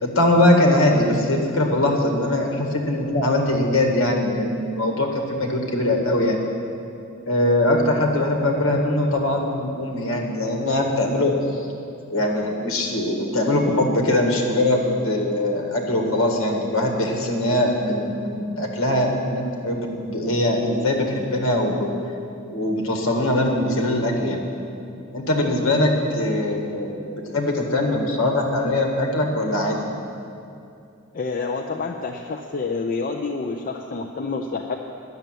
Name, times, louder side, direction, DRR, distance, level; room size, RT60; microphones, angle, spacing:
voice 1, 0.0-6.4 7.3-11.7 12.1-22.0 22.5-24.4 25.1-29.9, left 1 dB, 65° left, 1 dB, 1.7 m, -21 dB
voice 2, 31.1-34.8, left 4 dB, 40° left, 2 dB, 0.5 m, -28 dB
10.5 x 6.8 x 9.1 m, 2.6 s
head